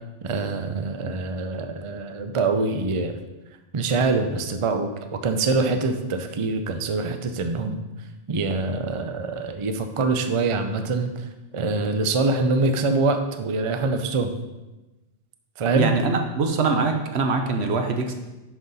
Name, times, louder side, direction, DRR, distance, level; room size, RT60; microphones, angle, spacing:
voice 1, 0.2-3.2 3.7-7.8 8.3-11.3 11.5-14.3 15.6-15.9, right 3 dB, 45° right, 7 dB, 0.4 m, -24 dB
voice 2, 15.8-18.1, right 4 dB, 65° right, 4 dB, 1.1 m, -23 dB
10.5 x 3.9 x 4.1 m, 1.1 s
omnidirectional pair, 1.2 m